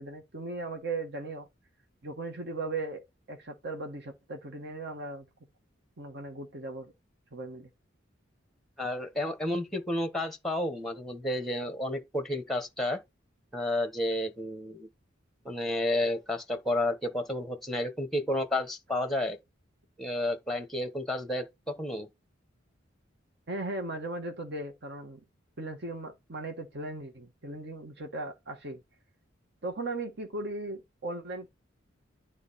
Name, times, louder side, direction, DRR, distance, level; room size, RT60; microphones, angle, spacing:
voice 1, 0.0-1.5 2.0-5.3 6.0-6.9 7.3-7.7 23.5-25.2 25.6-28.8 29.6-31.5, right 2 dB, 60° right, 1.3 m, -37 dB
voice 2, 8.8-13.0 13.5-14.9 15.4-19.4 20.0-22.1, left 1 dB, ahead, 1.0 m, -31 dB
9.6 x 3.7 x 4.1 m
head